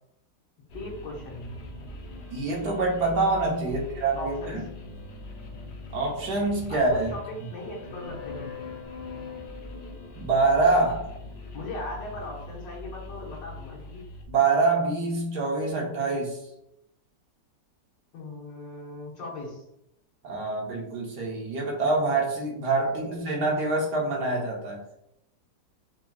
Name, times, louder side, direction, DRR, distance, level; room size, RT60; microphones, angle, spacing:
voice 1, 0.7-1.5 3.6-3.9 4.2-4.6 6.7-8.5 11.5-14.0 18.1-19.6 22.8-23.1, left 2 dB, 80° left, -4 dB, 1.9 m, -38 dB
sound 1, 0.7-14.2, left 2 dB, 60° left, 0.7 m, -41 dB
voice 2, 2.3-4.6 5.9-7.1 10.2-11.0 14.3-16.4 20.2-24.8, right 3 dB, 65° right, -2 dB, 1.4 m, -25 dB
4.6 x 2.8 x 2.3 m, 0.81 s
omnidirectional pair, 1.9 m